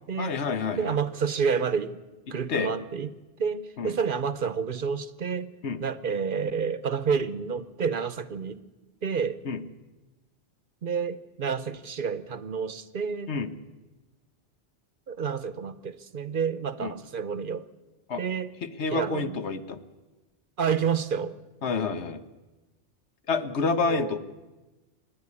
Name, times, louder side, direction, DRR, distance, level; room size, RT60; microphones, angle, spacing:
voice 1, 0.2-1.0 2.5-2.7 3.8-4.0 5.6-5.8 9.4-9.6 13.3-13.5 16.8-16.9 18.1-18.2 18.6-19.8 21.6-22.2 23.3-24.2, left 4 dB, 85° left, 11 dB, 1.3 m, -28 dB
voice 2, 0.8-2.0 2.3-3.1 3.4-5.5 5.8-8.6 9.0-9.4 10.8-13.3 15.1-17.7 18.2-18.5 18.9-19.4 20.6-21.4 23.8-24.2, right 6 dB, 55° right, 15 dB, 0.9 m, -29 dB
26.0 x 10.5 x 9.7 m, 1.2 s
omnidirectional pair, 1.1 m